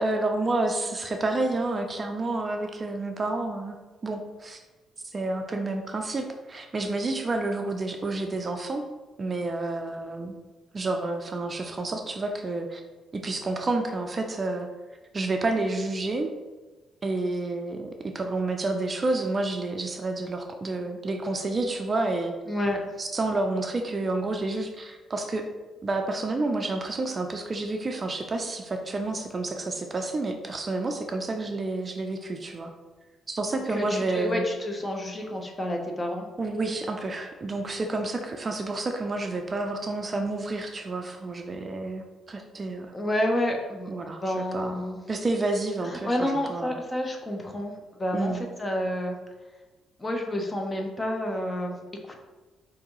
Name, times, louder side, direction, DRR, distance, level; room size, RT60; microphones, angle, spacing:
voice 1, 0.0-3.8 4.0-4.6 5.1-8.8 9.2-10.3 10.7-12.8 13.2-14.7 15.1-16.3 17.0-22.3 23.0-25.4 25.8-32.7 33.3-34.5 36.4-42.9 43.9-46.8 48.1-48.4, right 2 dB, 35° right, 4 dB, 0.4 m, -29 dB
voice 2, 22.5-22.8 33.7-36.3 42.9-43.9 44.2-45.0 45.9-47.7 48.0-48.3 48.6-49.2 50.0-51.8, left 1 dB, 20° left, 2 dB, 0.6 m, -29 dB
4.7 x 2.6 x 2.9 m, 1.2 s
cardioid pair, 90°, 0 cm